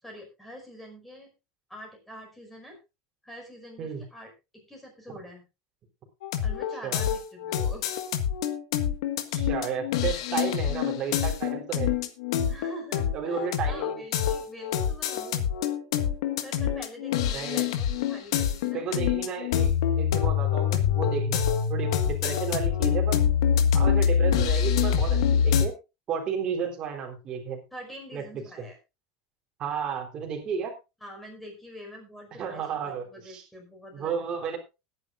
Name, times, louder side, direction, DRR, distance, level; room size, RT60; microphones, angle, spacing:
voice 1, 0.0-1.3 1.7-2.8 3.2-5.4 6.4-7.9 12.5-15.5 16.4-19.0 27.7-28.8 31.0-34.3, equal, 5° left, 2 dB, 5.2 m, -45 dB
sound 1, 6.2-25.7, left 8 dB, 85° left, 1.8 m, -25 dB
voice 2, 9.3-11.9 13.1-14.0 17.3-17.7 18.7-19.7 20.0-23.2 23.7-25.7 26.1-27.6 28.1-28.7 29.6-30.7 32.4-33.4 33.9-34.6, right 6 dB, 30° right, 2 dB, 3.6 m, -33 dB
20.5 x 10.0 x 2.6 m, 0.27 s
supercardioid pair, 160°, 3 cm